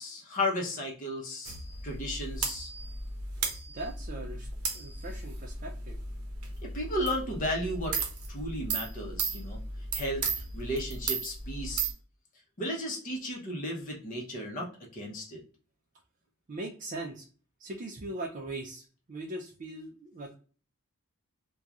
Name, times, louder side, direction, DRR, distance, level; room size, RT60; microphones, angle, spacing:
voice 1, 0.0-1.5 1.8-2.7 6.6-9.6 9.9-11.9 12.6-15.4, left 1 dB, 40° left, -2 dB, 0.7 m, -34 dB
sound 1, 1.5-11.9, right 4 dB, 75° right, 0.7 m, -35 dB
voice 2, 3.7-4.5 4.7-6.0 16.5-17.3 17.6-20.3, right 2 dB, 35° right, 0 dB, 0.4 m, -40 dB
2.9 x 2.3 x 2.3 m, 0.39 s
head